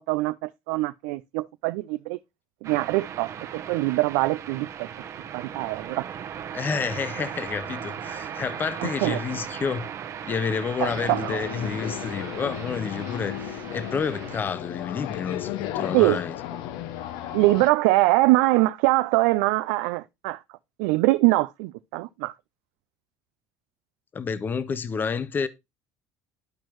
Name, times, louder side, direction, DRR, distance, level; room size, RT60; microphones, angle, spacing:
voice 1, 0.0-2.2 2.6-4.9 5.3-6.0 8.8-9.2 10.8-11.5 15.9-16.2 17.3-20.4 20.8-22.3, right 20 dB, 85° right, 0.3 m, -23 dB
sound 1, 2.6-14.4, right 8 dB, 45° right, 1.0 m, -37 dB
voice 2, 6.5-9.9 10.2-16.7 24.1-25.5, left 6 dB, 30° left, 0.7 m, -30 dB
sound 2, 10.8-17.7, left 11 dB, 75° left, 0.9 m, -34 dB
12.0 x 4.4 x 3.0 m
supercardioid pair, 115°, 7 cm